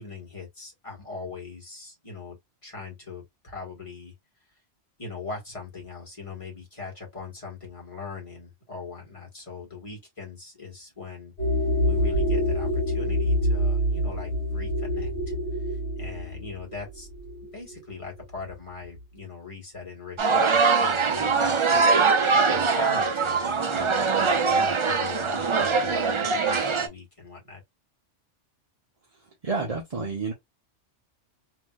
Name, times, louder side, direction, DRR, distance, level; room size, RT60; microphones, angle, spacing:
voice 1, 0.0-2.4 2.6-4.1 5.0-11.4 11.8-17.1 17.4-21.9 22.5-27.6, left 4 dB, 25° left, 1.7 m, -41 dB
sound 1, 11.4-17.9, equal, 60° left, 1.6 m, -26 dB
sound 2, 20.2-26.9, right 4 dB, 55° right, 0.3 m, -22 dB
voice 2, 29.4-30.3, right 4 dB, 35° right, 0.7 m, -29 dB
3.2 x 2.9 x 2.3 m
omnidirectional pair, 1.2 m